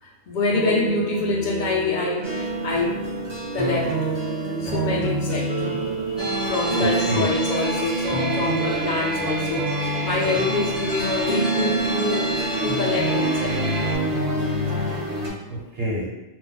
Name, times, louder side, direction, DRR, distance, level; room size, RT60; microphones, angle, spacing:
voice 1, 0.0-13.5 15.5-15.6, left 2 dB, 55° left, -3 dB, 0.5 m, -26 dB
sound 1, 0.5-13.8, right 4 dB, 70° right, 0.8 m, -33 dB
sound 2, 2.2-15.3, right 2 dB, 30° right, 0.7 m, -27 dB
sound 3, 6.2-13.9, equal, 5° left, 0.5 m, -30 dB
voice 2, 6.7-7.3 13.1-13.4 14.3-15.2 15.5-16.1, equal, 50° right, -5 dB, 1.1 m, -30 dB
2.5 x 2.1 x 3.9 m, 0.97 s
omnidirectional pair, 1.4 m